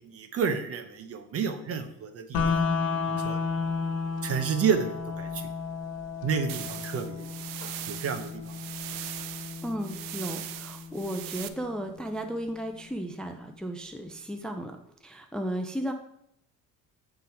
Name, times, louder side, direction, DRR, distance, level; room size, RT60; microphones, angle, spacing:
voice 1, 0.0-2.6 3.1-3.4 4.2-5.4 6.2-7.3 7.9-8.5, right 6 dB, 45° right, 7 dB, 0.9 m, -30 dB
sound 1, 2.3-12.3, left 5 dB, 75° left, 1.3 m, -33 dB
sound 2, 6.5-11.5, right 12 dB, 90° right, 0.6 m, -40 dB
voice 2, 9.6-14.8 15.0-15.9, equal, ahead, 4 dB, 0.5 m, -34 dB
9.2 x 3.8 x 4.3 m, 0.74 s
cardioid pair, 135°, 32 cm